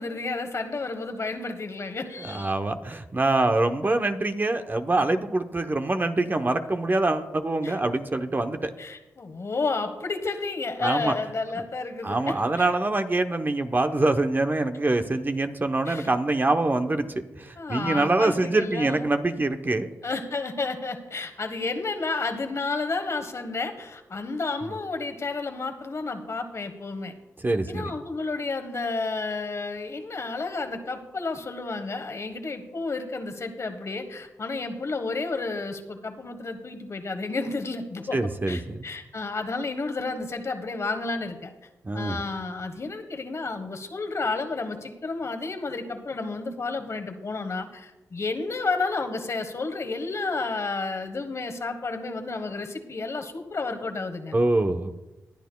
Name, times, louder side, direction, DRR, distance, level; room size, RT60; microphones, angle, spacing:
voice 1, 0.0-2.5 7.6-7.7 8.8-12.7 15.9-16.1 17.6-19.1 20.0-27.1 27.7-38.2 38.5-41.5 41.9-54.3, left 3 dB, 50° left, 6 dB, 1.3 m, -31 dB
voice 2, 2.2-8.7 10.8-11.1 12.0-17.1 17.4-19.9 27.4-28.0 38.1-38.9 41.8-42.2 54.3-55.0, right 2 dB, 30° right, 7 dB, 0.9 m, -25 dB
20.5 x 9.3 x 2.3 m, 1.0 s
cardioid pair, 50°, 6 cm